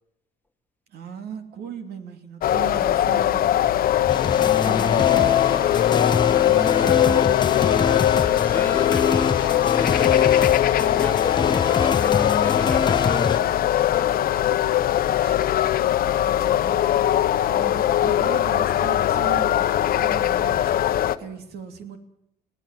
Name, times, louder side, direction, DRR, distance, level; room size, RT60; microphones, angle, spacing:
voice 1, 0.9-7.7 14.3-14.8 15.2-15.9 16.2-22.0, right 6 dB, 70° right, 7 dB, 2.9 m, -38 dB
sound 1, 2.4-21.2, left 12 dB, 60° left, 1.0 m, -20 dB
sound 2, 4.1-13.4, left 5 dB, 25° left, 0.9 m, -25 dB
voice 2, 8.1-10.1 10.4-14.3, left 2 dB, 10° left, 6 dB, 1.6 m, -35 dB
22.0 x 16.5 x 7.7 m, 0.77 s
cardioid pair, 110°, 17 cm